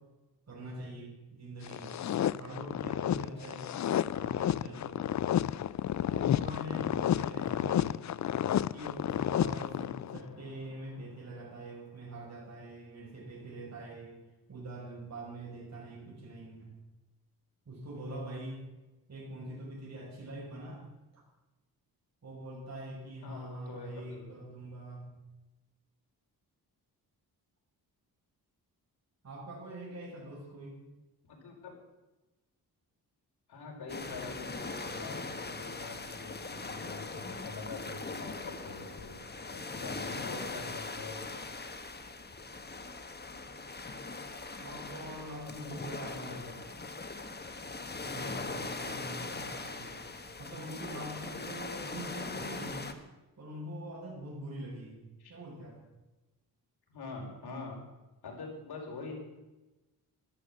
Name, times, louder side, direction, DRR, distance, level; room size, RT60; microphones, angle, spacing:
voice 1, 0.5-2.0 2.4-3.7 4.1-5.1 6.0-7.9 8.7-14.2 14.5-16.7 17.6-18.6 19.1-20.9 21.1-21.2 22.2-25.1 29.2-30.8 44.6-46.4 48.0-52.9 53.4-55.0 55.3-55.8, right 1 dB, 45° right, -3 dB, 6.4 m, -44 dB
sound 1, 1.6-10.2, left 10 dB, 45° left, 0.4 m, -31 dB
voice 2, 23.2-24.3 31.3-31.7 33.5-41.3 46.1-46.5 55.2-55.3 56.9-57.8 58.2-59.1, left 3 dB, 75° left, 0 dB, 5.2 m, -44 dB
sound 2, 33.9-52.9, left 3 dB, 25° left, 1.5 m, -41 dB
13.5 x 12.5 x 7.5 m, 1.1 s
cardioid pair, 105°, 39 cm